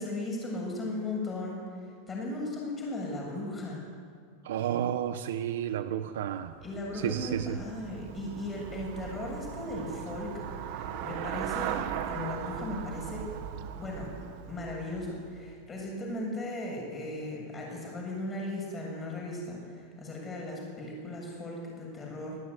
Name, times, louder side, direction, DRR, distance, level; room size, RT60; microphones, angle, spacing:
voice 1, 0.0-1.6 2.1-3.8 6.6-10.3 10.7-13.3 13.7-14.1 14.5-22.4, left 1 dB, 10° left, -1 dB, 7.5 m, -37 dB
voice 2, 4.4-6.6 6.9-7.6, right 10 dB, 75° right, 9 dB, 1.1 m, -31 dB
Traffic noise roadway noise / Bicycle, 6.5-15.7, right 9 dB, 45° right, 1.7 m, -39 dB
26.5 x 19.5 x 9.9 m, 2.1 s
supercardioid pair, 175°, 0 cm